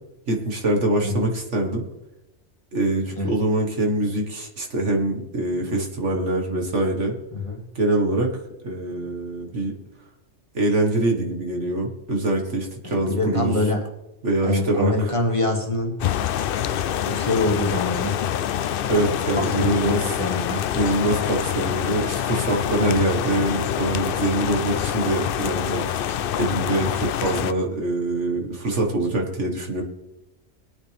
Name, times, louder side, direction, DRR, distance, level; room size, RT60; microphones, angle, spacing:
voice 1, 0.3-1.8 2.7-7.2 7.8-8.3 8.6-9.7 10.5-13.7 14.2-15.1 18.9-20.1 20.7-29.8, right 1 dB, 70° right, 1 dB, 2.1 m, -24 dB
voice 2, 7.3-7.6 12.8-13.8 14.4-15.9 17.0-18.2 18.9-20.6 22.8-23.0, left 2 dB, 25° left, 0 dB, 2.1 m, -25 dB
sound 1, 16.0-27.5, left 10 dB, 60° left, 0.6 m, -26 dB
22.0 x 8.7 x 3.5 m, 0.95 s
omnidirectional pair, 1.3 m